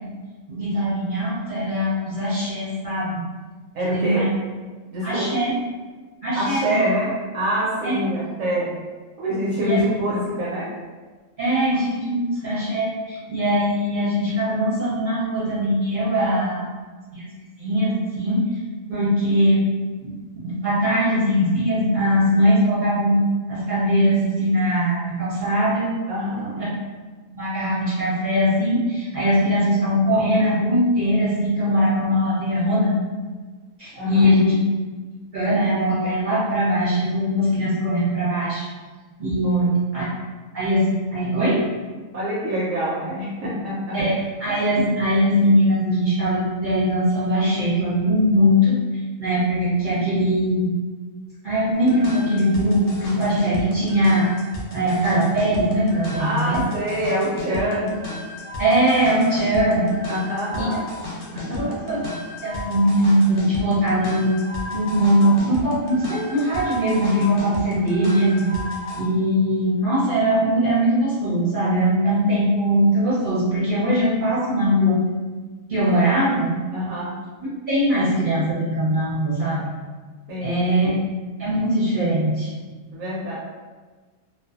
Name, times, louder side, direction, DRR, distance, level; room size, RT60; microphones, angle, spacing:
voice 1, 0.5-3.2 3.9-4.3 5.0-5.5 6.2-6.8 7.8-8.0 9.6-9.8 11.4-16.7 17.1-17.2 17.6-18.6 18.9-19.6 20.0-20.1 20.4-23.2 23.5-25.9 26.6-26.7 27.3-32.9 33.8-34.5 35.3-38.7 39.2-40.0 40.5-41.6 43.9-48.7 49.2-50.7 51.4-54.3 54.7-56.6 58.6-59.8 60.6-60.7 61.6-62.0 62.4-64.3 64.7-68.5 69.0-75.0 75.7-76.6 77.7-79.7 80.4-80.9 81.4-82.5, equal, 45° right, -10 dB, 0.7 m, -21 dB
voice 2, 3.7-4.3 4.9-5.3 6.3-8.8 9.2-10.8 26.1-26.6 33.9-34.3 39.4-39.7 42.1-44.0 56.2-58.1 60.1-60.8 61.3-61.8 76.7-77.1 80.3-80.6 82.9-83.3, equal, 75° right, -6 dB, 1.0 m, -25 dB
sound 1, 51.7-69.0, left 2 dB, 65° left, 0.8 m, -33 dB
2.5 x 2.2 x 2.3 m, 1.4 s
omnidirectional pair, 1.4 m